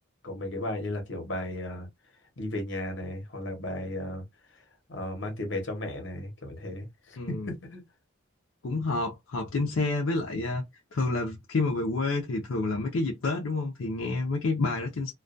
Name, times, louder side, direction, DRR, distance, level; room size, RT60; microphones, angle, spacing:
voice 1, 0.2-1.9 2.4-4.2 4.9-7.8, left 1 dB, 65° left, 0.9 m, -35 dB
voice 2, 7.2-7.5 8.6-10.6 10.9-15.1, left 3 dB, 80° left, 0.5 m, -29 dB
2.2 x 2.2 x 2.5 m
head